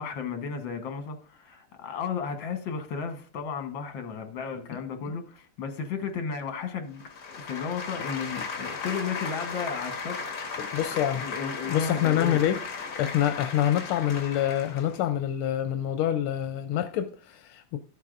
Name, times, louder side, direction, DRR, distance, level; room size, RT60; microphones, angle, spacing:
voice 1, 0.0-10.2 10.4-12.4, left 6 dB, 65° left, 1.9 m, -34 dB
sound 1, 7.0-15.0, left 5 dB, 45° left, 1.8 m, -36 dB
voice 2, 10.6-11.2 11.7-12.6 12.9-17.8, left 11 dB, 85° left, 1.5 m, -26 dB
13.0 x 8.3 x 2.5 m
omnidirectional pair, 2.3 m